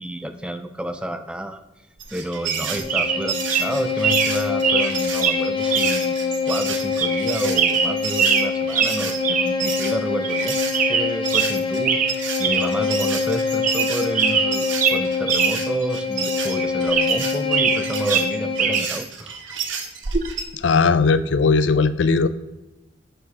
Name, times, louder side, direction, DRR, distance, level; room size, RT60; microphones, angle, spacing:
voice 1, 0.0-1.6 2.1-6.1 6.4-10.6 10.9-19.4, right 1 dB, 5° right, 8 dB, 0.3 m, -30 dB
sound 1, 2.0-10.8 11.2-20.4, right 6 dB, 80° right, 1.0 m, -31 dB
Bowed string instrument, 2.3-19.0, left 5 dB, 25° left, 0.7 m, -25 dB
sound 2, 2.5-2.6 2.9-3.2 3.5-3.7 4.0-4.3 4.6-4.9 5.2-5.4 5.7-6.0 6.3-6.4 7.0-7.2 7.5-8.5 8.7-8.9 9.2-9.5 9.8-9.9 10.2-10.5 10.7-11.5 11.8-12.1 12.4-12.7 13.0-13.1 13.5-13.9 14.1-15.5 15.8-15.9 16.5-17.8 18.1-18.8 20.0-20.3, right 7 dB, 45° right, 0.6 m, -21 dB
voice 2, 20.6-22.3, left 4 dB, 70° left, 14 dB, 0.4 m, -18 dB
6.6 x 5.5 x 4.1 m, 0.97 s
head